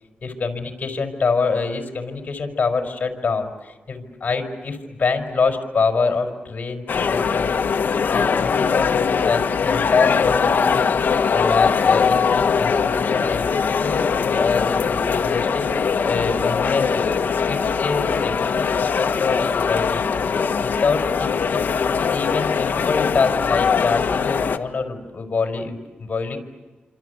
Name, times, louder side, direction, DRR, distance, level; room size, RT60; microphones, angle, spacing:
voice 1, 0.2-7.5 8.1-10.9 11.3-17.2 17.4-20.1 20.6-21.6 22.0-26.4, left 4 dB, 45° left, 5 dB, 5.0 m, -25 dB
sound 1, 6.9-24.6, left 6 dB, 60° left, 1.6 m, -21 dB
27.5 x 26.5 x 8.2 m, 1.2 s
wide cardioid pair, 100°, 4 cm